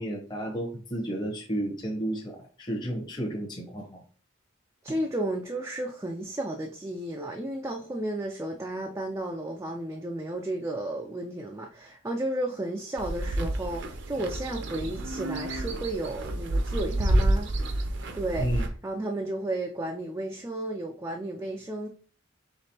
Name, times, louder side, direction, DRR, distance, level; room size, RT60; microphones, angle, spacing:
voice 1, 0.0-4.0 18.4-18.6, right 1 dB, 20° left, 0.9 m, -32 dB
voice 2, 4.8-17.5 18.1-21.9, right 1 dB, 15° right, 0.3 m, -33 dB
sound 1, 13.0-18.7, right 1 dB, 60° right, 0.6 m, -29 dB
5.0 x 3.3 x 2.8 m
head